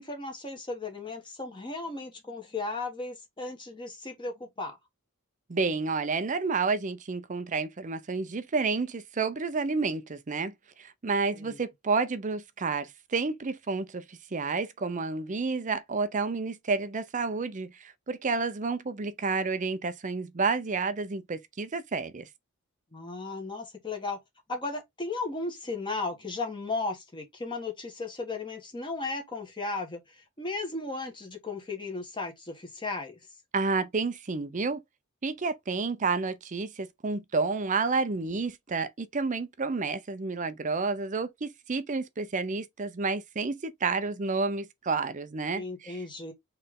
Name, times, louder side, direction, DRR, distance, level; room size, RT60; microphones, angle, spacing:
voice 1, 0.0-4.8 11.3-11.6 22.9-24.2 24.5-30.0 30.4-33.2 45.6-46.3, left 3 dB, 20° left, 1.3 m, -35 dB
voice 2, 5.5-10.5 10.8-22.3 33.5-34.8 35.2-46.0, right 4 dB, 35° right, 0.5 m, -30 dB
4.3 x 3.2 x 3.6 m
head